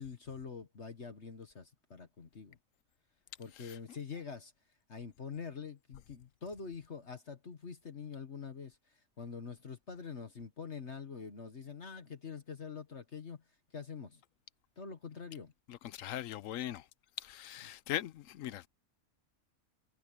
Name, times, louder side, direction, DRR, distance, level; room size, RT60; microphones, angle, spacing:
voice 1, 0.0-2.6 3.4-4.5 4.9-13.4 13.7-14.2 14.8-15.5, left 5 dB, 50° left, 1.7 m, -45 dB
voice 2, 15.7-16.9 17.2-18.7, left 12 dB, 70° left, 1.0 m, -40 dB
omnidirectional pair, 1.5 m